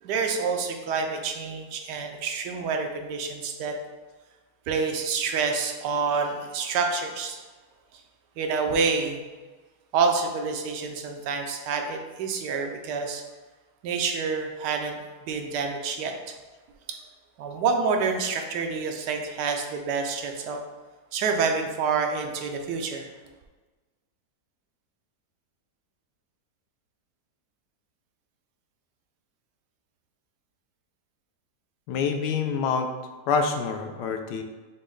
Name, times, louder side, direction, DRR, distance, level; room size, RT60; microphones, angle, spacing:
voice 1, 0.0-3.7 4.7-7.4 8.4-9.2 9.9-13.2 13.8-16.1 17.4-20.6 21.1-23.1, right 5 dB, 85° right, 3 dB, 1.2 m, -27 dB
voice 2, 31.9-32.9 33.3-34.4, left 5 dB, 85° left, 5 dB, 1.2 m, -26 dB
6.1 x 2.1 x 3.8 m, 1.3 s
omnidirectional pair, 1.8 m